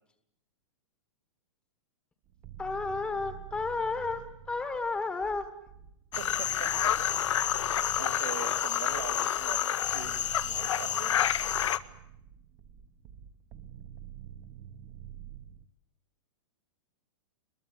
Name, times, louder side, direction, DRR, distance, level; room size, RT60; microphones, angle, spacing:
sound 1, 2.2-15.7, right 10 dB, 20° right, 0.9 m, -48 dB
voice 1, 2.6-5.5, left 3 dB, 5° left, 9 dB, 1.2 m, -32 dB
sound 2, 6.1-11.8, left 10 dB, 80° left, 1.5 m, -29 dB
voice 2, 6.2-7.0 8.0-11.4, right 9 dB, 60° right, 11 dB, 2.5 m, -42 dB
23.0 x 22.0 x 9.8 m, 0.80 s
supercardioid pair, 180°, 15 cm